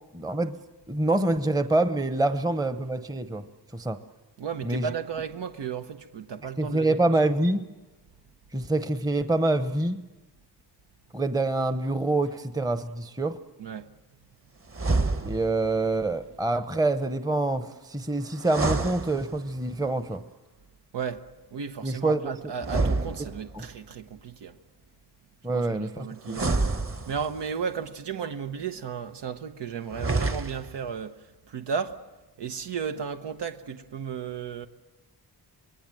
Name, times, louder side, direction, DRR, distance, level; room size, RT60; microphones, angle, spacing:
voice 1, 0.1-0.5 0.9-3.4 3.7-4.0 4.6-4.9 6.6-7.6 8.5-10.0 11.1-13.4 15.2-20.2 21.8-22.4 23.5-23.6 25.4-25.9 26.3-26.4, right 2 dB, 10° right, 0.9 m, -26 dB
voice 2, 4.4-7.2 13.6-13.9 20.9-21.3 21.5-24.6 25.5-26.6 27.1-32.0 32.4-34.7, right 6 dB, 75° right, 1.1 m, -34 dB
sound 1, 14.7-15.7 18.4-19.7 22.6-23.8 26.3-27.5 29.9-30.8, right 3 dB, 30° right, 1.4 m, -28 dB
26.0 x 21.0 x 7.6 m
cardioid pair, 85°, 42 cm